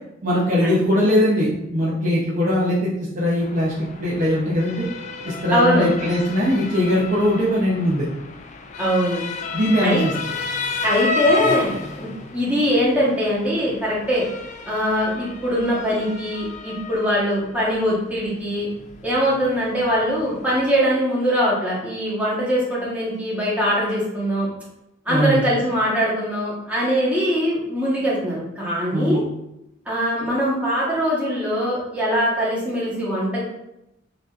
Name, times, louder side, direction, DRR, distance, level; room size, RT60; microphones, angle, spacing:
voice 1, 0.2-3.7 4.0-4.9 5.2-8.1 9.5-10.1 25.1-25.4 28.9-29.2, equal, 40° right, -6 dB, 0.7 m, -20 dB
Motor vehicle (road) / Siren, 3.4-20.8, left 4 dB, 35° left, 0.3 m, -32 dB
voice 2, 5.5-5.9 8.8-9.2 9.8-10.0 10.8-11.7 11.9-14.3 14.6-18.7 19.0-24.5 25.0-29.2 29.8-33.4, equal, 5° right, -8 dB, 1.3 m, -22 dB
5.8 x 2.7 x 2.5 m, 0.88 s
head